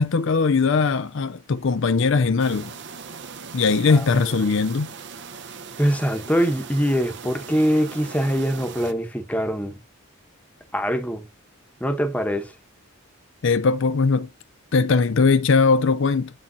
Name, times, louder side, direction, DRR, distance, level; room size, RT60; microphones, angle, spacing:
voice 1, 0.0-2.7 3.5-4.9 13.4-14.3 14.7-16.3, left 4 dB, 60° left, 0.5 m, -20 dB
sound 1, 2.4-8.9, right 5 dB, 55° right, 0.8 m, -39 dB
voice 2, 3.9-4.4 5.8-9.8 10.7-11.2 11.8-12.5, equal, 5° left, 1.0 m, -23 dB
8.8 x 6.2 x 2.8 m
head